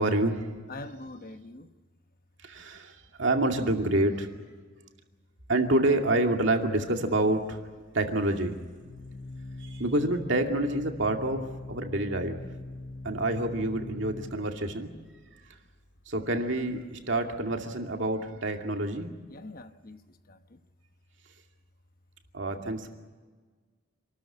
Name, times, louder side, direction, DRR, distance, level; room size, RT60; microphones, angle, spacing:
voice 1, 0.0-0.5 2.4-4.4 5.5-7.6 7.9-8.5 9.6-12.4 13.0-14.9 16.1-19.1 22.3-22.9, right 1 dB, 60° right, 2.5 m, -27 dB
voice 2, 0.7-1.7 19.0-20.0 20.3-20.6 22.5-22.9, left 2 dB, 45° left, 1.1 m, -45 dB
Organ, 7.0-17.5, left 2 dB, 70° left, 2.0 m, -43 dB
27.5 x 13.5 x 9.9 m
head